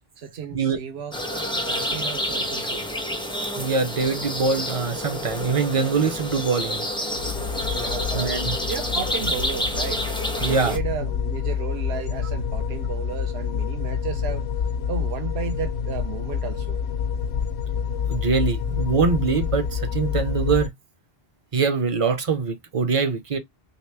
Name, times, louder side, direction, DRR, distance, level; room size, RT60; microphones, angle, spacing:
voice 1, 0.2-2.9 7.7-8.3 8.7-10.1 10.4-14.5 14.9-16.8, right 7 dB, 75° right, 0.9 m, -34 dB
sound 1, 1.1-10.8, left 1 dB, 5° left, 0.4 m, -29 dB
voice 2, 3.6-6.9 8.1-8.6 10.4-10.8 18.1-20.7 21.5-23.4, right 5 dB, 40° right, 0.6 m, -23 dB
sound 2, 7.1-20.7, left 7 dB, 85° left, 0.9 m, -28 dB
3.1 x 2.9 x 3.3 m
omnidirectional pair, 1.1 m